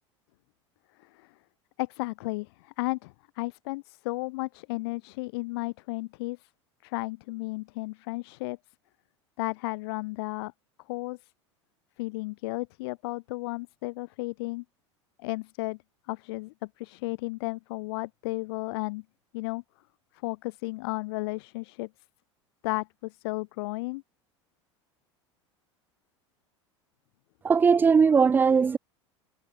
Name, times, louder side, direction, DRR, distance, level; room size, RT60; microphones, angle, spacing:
voice 1, 1.0-1.3 1.8-6.5 6.8-8.6 9.4-10.5 10.9-11.2 12.0-14.6 15.2-15.8 16.1-19.0 19.3-19.6 20.2-21.9 22.6-24.0, left 24 dB, 55° left, 1.3 m, -34 dB
voice 2, 27.4-28.8, right 5 dB, 10° right, 0.4 m, -19 dB
figure-of-eight pair, 75°, 15 cm